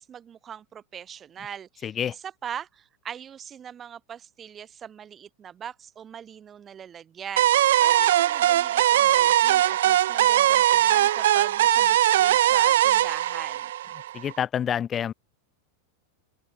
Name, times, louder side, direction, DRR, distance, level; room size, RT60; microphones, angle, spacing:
voice 1, 0.0-13.7, right 8 dB, 25° right, 2.7 m, -41 dB
voice 2, 1.8-2.2 14.1-15.1, left 9 dB, 25° left, 0.7 m, -27 dB
sound 1, 7.4-14.3, right 13 dB, 60° right, 0.4 m, -20 dB
open air
figure-of-eight pair, 90°, 0 cm